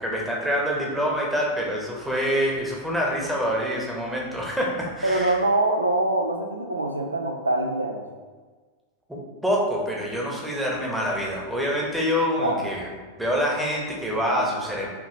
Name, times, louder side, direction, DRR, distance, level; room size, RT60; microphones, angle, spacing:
voice 1, 0.0-5.4 9.1-12.9 13.2-14.9, equal, 5° right, -3 dB, 0.9 m, -26 dB
voice 2, 5.0-8.0 12.4-12.6 14.1-14.4, right 2 dB, 80° right, 2 dB, 0.4 m, -24 dB
5.0 x 2.8 x 2.9 m, 1.4 s
figure-of-eight pair, 90°, 0 cm